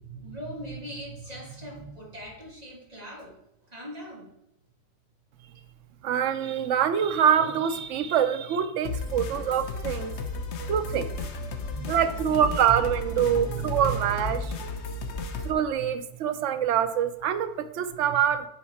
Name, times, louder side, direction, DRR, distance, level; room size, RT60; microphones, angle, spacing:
voice 1, 0.0-3.3 3.7-4.3 9.8-10.9 11.4-12.8 13.2-14.6, right 4 dB, 25° right, -1 dB, 1.8 m, -39 dB
voice 2, 6.0-10.1 10.7-11.2 11.9-14.4 15.4-18.5, right 9 dB, 65° right, 9 dB, 0.7 m, -25 dB
sound 1, 8.8-15.5, left 3 dB, 55° left, 0.8 m, -34 dB
10.0 x 4.6 x 4.2 m, 0.83 s
omnidirectional pair, 1.9 m